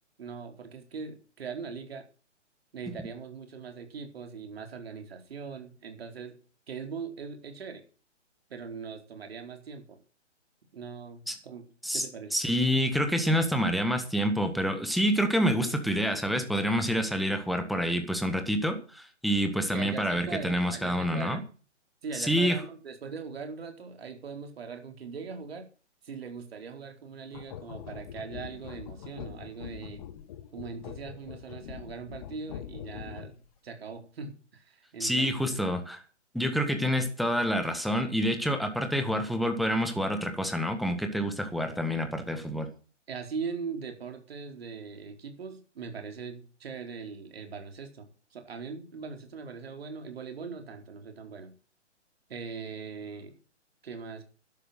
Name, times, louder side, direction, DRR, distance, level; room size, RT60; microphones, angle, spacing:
voice 1, 0.2-2.0 2.7-6.4 6.7-7.8 8.5-10.0 10.7-11.6 11.9-12.3 19.7-21.4 22.0-25.7 26.0-30.0 30.5-35.6 43.1-51.5 52.3-53.4 53.8-54.2, right 5 dB, 55° right, 5 dB, 4.4 m, -40 dB
voice 2, 12.3-21.4 22.1-22.6 35.0-36.0 36.3-42.7, equal, ahead, 6 dB, 1.5 m, -27 dB
sound 1, 27.3-33.5, left 10 dB, 30° left, 1.4 m, -43 dB
12.0 x 11.5 x 6.6 m, 0.37 s
figure-of-eight pair, 140°, 37 cm